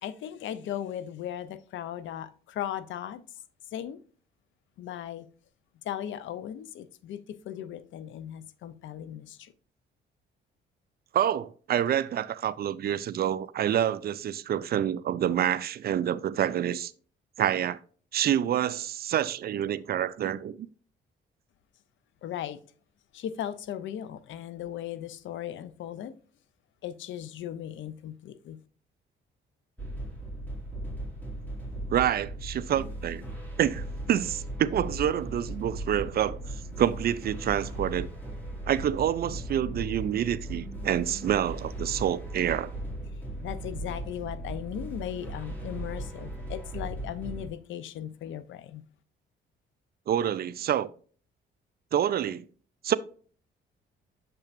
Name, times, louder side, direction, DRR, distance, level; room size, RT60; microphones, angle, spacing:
voice 1, 0.0-3.2 3.7-4.0 4.8-5.3 5.8-7.2 7.4-9.5 22.2-22.6 23.1-26.1 26.8-28.6 43.4-48.8, left 10 dB, 75° left, 0.6 m, -37 dB
voice 2, 11.1-16.9 17.4-17.8 18.1-20.6 31.9-33.2 33.6-36.4 36.8-38.1 38.7-42.7 50.1-50.9 51.9-52.4 52.8-53.0, right 10 dB, 50° right, 0.4 m, -27 dB
sound 1, 29.8-47.5, right 1 dB, 10° left, 2.6 m, -37 dB
6.9 x 5.5 x 2.5 m
cardioid pair, 90°, 20 cm